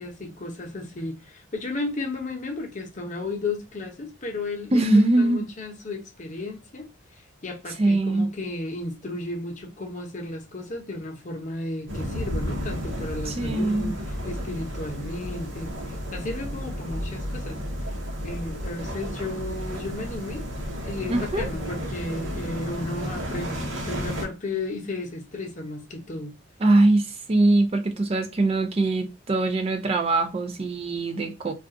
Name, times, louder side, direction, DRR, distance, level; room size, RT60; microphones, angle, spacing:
voice 1, 0.0-6.9 7.4-14.0 14.2-15.7 16.1-17.6 18.2-20.5 20.8-26.3, left 2 dB, 40° left, 0.7 m, -34 dB
voice 2, 4.7-5.4 7.8-8.3 13.3-13.9 21.1-21.5 26.6-31.5, right 2 dB, 30° right, 0.4 m, -22 dB
sound 1, 11.9-24.3, equal, 80° right, 0.9 m, -32 dB
2.4 x 2.4 x 3.6 m
head